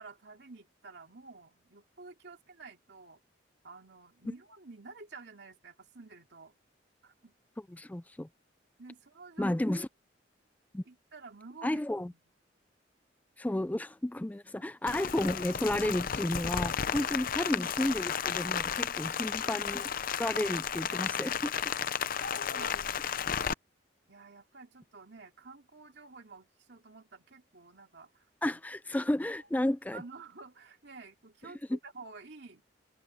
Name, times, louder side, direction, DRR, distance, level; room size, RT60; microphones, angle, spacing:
voice 1, 0.0-3.2 3.6-6.5 7.0-7.3 8.8-9.5 10.8-12.2 14.6-14.7 16.9-17.2 19.0-19.2 20.7-21.2 22.3-23.6 24.1-28.6 29.0-29.1 29.4-29.5 29.9-32.6, right 4 dB, 65° right, 2.7 m, -51 dB
voice 2, 7.7-8.3 9.4-9.9 10.7-10.8 11.6-12.1 13.4-19.9 20.2-21.7 28.4-30.0 31.7-31.8, left 1 dB, 10° left, 0.4 m, -32 dB
Rain, 14.9-23.5, left 7 dB, 50° left, 0.6 m, -33 dB
head